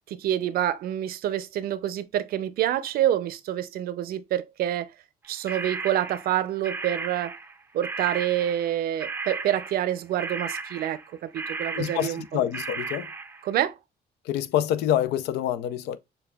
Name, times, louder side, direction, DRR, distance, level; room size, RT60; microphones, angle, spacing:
voice 1, 0.1-4.9 5.3-7.4 7.7-12.2 13.4-13.8, right 11 dB, 65° right, 0.5 m, -27 dB
sound 1, 5.5-7.6 7.8-13.5, right 4 dB, 15° right, 0.4 m, -35 dB
voice 2, 11.7-13.1 14.3-16.0, left 11 dB, 80° left, 0.5 m, -26 dB
6.7 x 2.3 x 2.3 m
cardioid pair, 110°, 17 cm